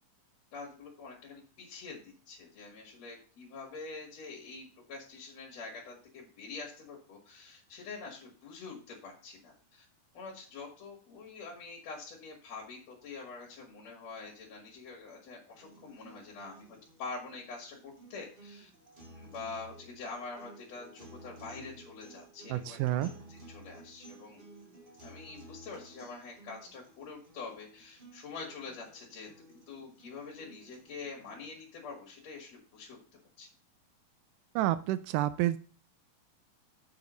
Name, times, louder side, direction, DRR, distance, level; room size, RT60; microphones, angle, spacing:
voice 1, 0.5-9.8 10.1-18.7 19.1-24.4 25.0-29.3 29.7-33.0 33.4-33.5, left 4 dB, 55° left, -1 dB, 3.0 m, -45 dB
sound 1, 15.5-31.5, right 2 dB, 20° right, 1.6 m, -55 dB
voice 2, 22.5-23.1 34.6-35.6, right 14 dB, 80° right, 12 dB, 2.0 m, -29 dB
7.1 x 6.1 x 5.0 m, 0.40 s
omnidirectional pair, 3.8 m